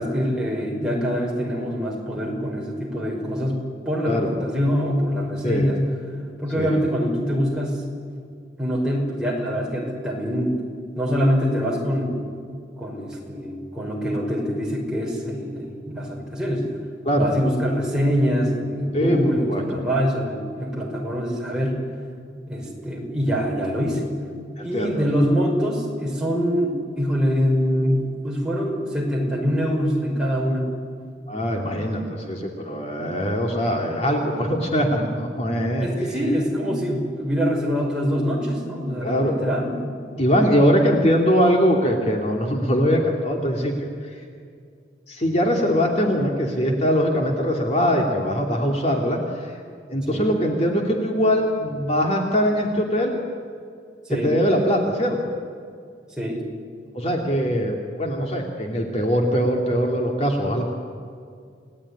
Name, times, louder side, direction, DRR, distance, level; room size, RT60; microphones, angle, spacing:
voice 1, 0.0-5.8 6.4-7.8 8.6-10.6 11.0-12.2 12.8-16.7 17.1-21.8 22.5-24.0 24.6-30.7 35.8-40.4 50.1-50.3 54.1-54.3 56.1-56.4, equal, 5° right, -2 dB, 5.5 m, -24 dB
voice 2, 19.5-19.8 24.6-25.0 31.3-35.9 36.2-36.3 39.0-39.3 40.2-44.2 45.1-49.6 49.9-53.2 54.1-55.2 56.9-60.6, equal, 35° left, 1 dB, 2.6 m, -22 dB
29.5 x 18.5 x 10.0 m, 2.3 s
head